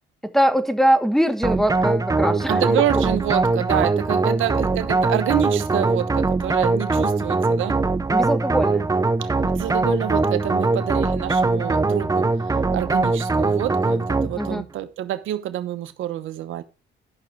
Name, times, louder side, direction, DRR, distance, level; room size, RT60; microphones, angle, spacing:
voice 1, 0.3-2.6 8.1-8.9 14.3-14.6, equal, ahead, 1.3 m, -21 dB
sound 1, 1.4-14.6, right 3 dB, 15° right, 0.8 m, -21 dB
voice 2, 2.5-7.8 9.2-12.3 12.7-16.6, right 12 dB, 80° right, 1.0 m, -27 dB
12.5 x 6.2 x 4.7 m
cardioid pair, 90°, 20 cm